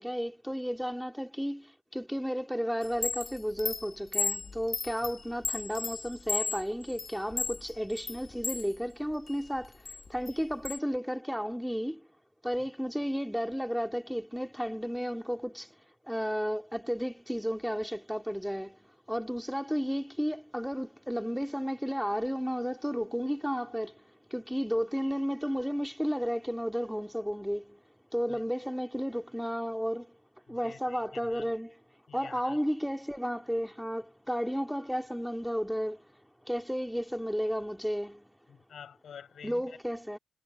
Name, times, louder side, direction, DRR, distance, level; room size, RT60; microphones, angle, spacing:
voice 1, 0.0-12.1 12.4-15.8 16.0-27.8 28.1-30.2 30.5-31.8 32.1-36.1 36.5-38.3 39.4-40.2, equal, ahead, 3.6 m, -33 dB
Chime, 2.8-8.7 9.1-10.8, left 4 dB, 35° left, 1.2 m, -35 dB
voice 2, 30.5-31.5 32.1-32.6 38.5-39.8, left 8 dB, 65° left, 6.9 m, -49 dB
supercardioid pair, 50°, 0 cm